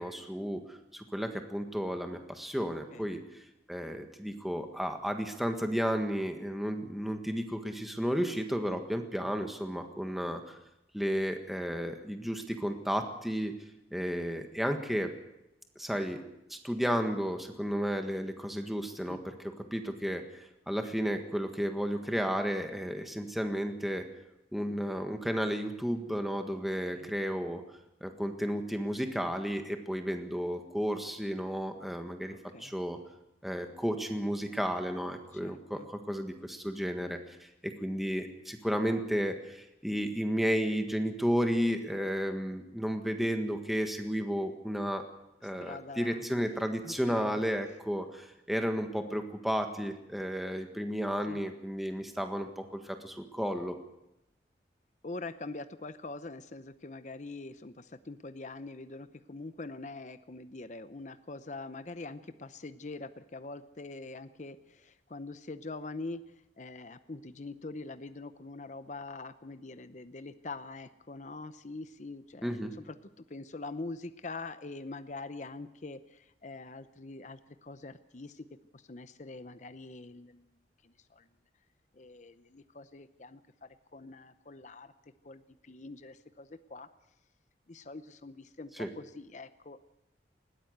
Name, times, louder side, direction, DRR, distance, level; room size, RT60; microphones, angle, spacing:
voice 1, 0.0-3.4 3.7-10.6 10.9-13.6 13.9-15.1 15.7-16.2 16.5-19.3 19.7-24.0 24.5-27.6 28.0-32.3 32.6-33.0 33.4-45.0 45.4-53.8 72.4-72.7 88.8-88.9, equal, ahead, 5 dB, 1.6 m, -33 dB
voice 2, 32.3-32.7 35.4-35.9 45.6-46.2 46.8-47.4 51.3-51.4 55.0-78.5 78.7-80.5 80.8-81.3 81.9-84.9 85.2-86.9 87.7-89.8, left 3 dB, 40° left, 11 dB, 0.7 m, -44 dB
20.5 x 16.0 x 8.0 m, 0.90 s
head